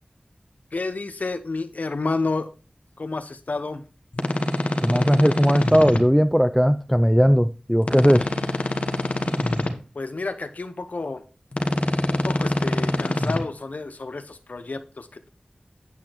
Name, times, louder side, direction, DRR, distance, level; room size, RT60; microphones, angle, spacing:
voice 1, 0.7-2.5 3.0-3.8 9.9-11.2 12.1-15.3, left 3 dB, 70° left, 1.0 m, -30 dB
sound 1, 4.1-6.0 7.8-9.7 11.5-13.4, left 1 dB, 55° left, 1.2 m, -25 dB
voice 2, 4.8-8.7, equal, ahead, 0.3 m, -18 dB
8.5 x 8.5 x 3.0 m
wide cardioid pair, 70°, 3 cm